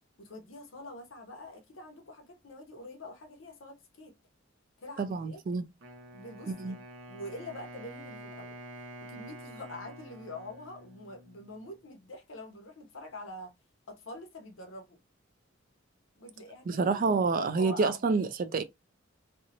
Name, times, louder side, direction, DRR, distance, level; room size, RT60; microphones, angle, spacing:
voice 1, 0.2-4.2 4.8-5.4 6.1-6.8 7.1-8.6 9.0-13.5 13.9-15.0 16.2-17.1 17.4-18.0, left 1 dB, 70° left, 0.8 m, -45 dB
voice 2, 5.0-5.7 6.5-6.8 16.7-18.6, right 4 dB, 45° right, 0.3 m, -28 dB
Wind instrument woodwind instrument, 5.8-11.8, right 1 dB, 85° right, 0.6 m, -48 dB
2.6 x 2.0 x 2.7 m
head